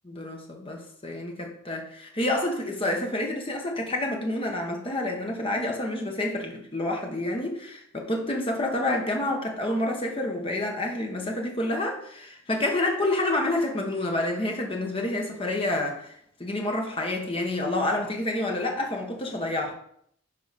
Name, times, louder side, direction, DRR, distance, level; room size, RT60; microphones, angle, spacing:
voice 1, 0.1-16.1 16.4-19.7, left 1 dB, 25° left, 1 dB, 1.2 m, -28 dB
9.8 x 5.0 x 4.1 m, 0.68 s
head